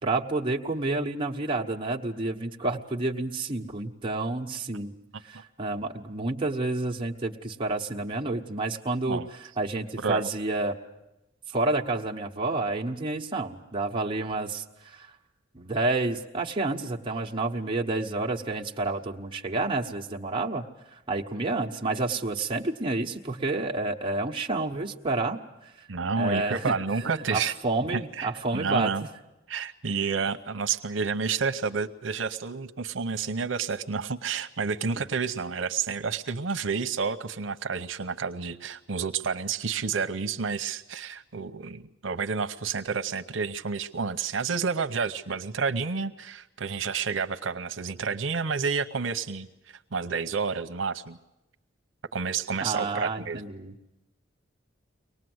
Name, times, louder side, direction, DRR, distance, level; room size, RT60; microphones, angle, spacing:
voice 1, 0.0-4.9 5.2-10.8 11.5-15.2 15.5-25.9 26.2-26.7 27.0-28.9 34.9-35.0 52.6-53.7, right 2 dB, 25° right, 0 dB, 1.2 m, -29 dB
voice 2, 10.0-10.3 25.9-27.5 27.9-29.0 29.5-49.5 49.9-51.2 52.1-53.4, right 5 dB, 90° right, 7 dB, 0.8 m, -30 dB
24.0 x 19.0 x 7.9 m, 0.96 s
head